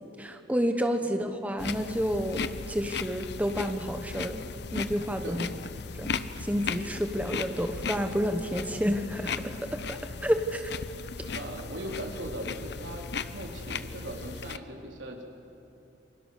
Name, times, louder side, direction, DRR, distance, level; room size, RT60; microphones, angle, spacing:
voice 1, 0.2-2.4 2.7-4.5 4.7-5.5 6.0-6.1 6.4-9.3 9.6-10.6, equal, 10° right, 6 dB, 1.0 m, -29 dB
sound 1, 1.6-14.6, left 5 dB, 60° left, 0.8 m, -37 dB
voice 2, 11.3-13.1 13.3-15.2, right 1 dB, 80° right, 1 dB, 4.0 m, -39 dB
28.0 x 25.0 x 6.7 m, 2.9 s
head